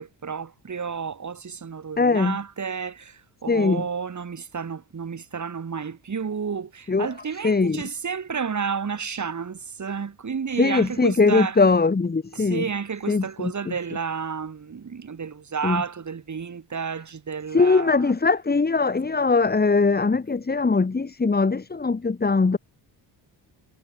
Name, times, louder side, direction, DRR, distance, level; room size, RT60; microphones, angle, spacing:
voice 1, 0.0-11.6 12.4-18.1, right 6 dB, 40° right, 7.2 m, -31 dB
voice 2, 2.0-2.4 3.5-3.9 6.9-7.1 7.4-7.8 10.6-12.6 13.1-13.7 15.6-15.8 17.5-22.6, left 4 dB, 20° left, 2.0 m, -21 dB
cardioid pair, 110°, 44 cm